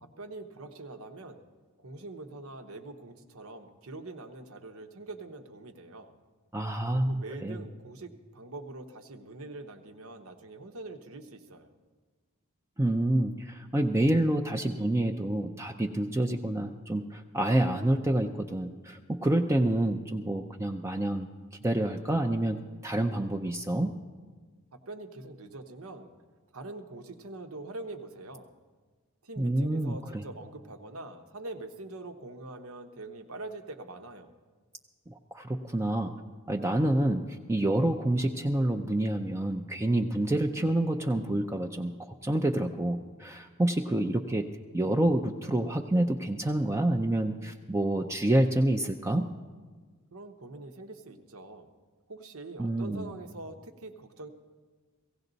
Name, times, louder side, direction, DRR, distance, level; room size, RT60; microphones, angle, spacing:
voice 1, 0.0-1.4 1.8-6.1 6.9-11.7 24.7-26.1 26.5-28.5 29.2-34.3 50.1-51.7 52.1-54.3, right 2 dB, 90° right, 6 dB, 1.0 m, -44 dB
voice 2, 6.5-7.6 12.8-21.3 21.6-23.9 29.4-30.2 35.1-36.1 36.5-44.5 44.7-49.3 52.6-53.1, right 1 dB, 15° right, 3 dB, 0.5 m, -28 dB
17.5 x 16.0 x 4.0 m, 1.5 s
head